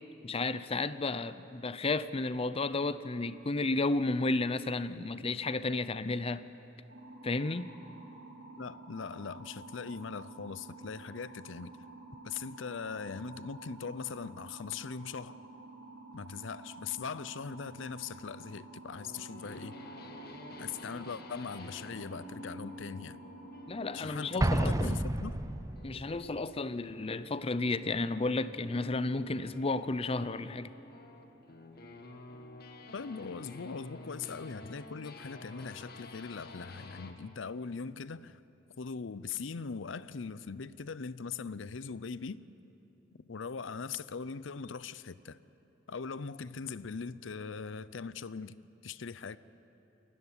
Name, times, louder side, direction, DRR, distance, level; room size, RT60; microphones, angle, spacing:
voice 1, 0.2-6.4 7.2-7.7 23.7-25.0 25.8-30.7, left 3 dB, 30° left, 0.6 m, -32 dB
sound 1, 6.9-24.7, right 3 dB, 70° right, 6.2 m, -50 dB
voice 2, 8.6-11.7 12.2-15.4 16.1-19.8 20.6-23.2 23.9-25.4 32.9-38.4 38.8-42.4 43.3-45.4 45.9-48.6 48.8-49.4, left 5 dB, 75° left, 0.6 m, -41 dB
sound 2, 19.0-37.2, left 2 dB, 55° left, 1.7 m, -50 dB
Explosion, 24.4-26.1, right 1 dB, 15° right, 0.5 m, -30 dB
28.5 x 13.5 x 9.9 m
head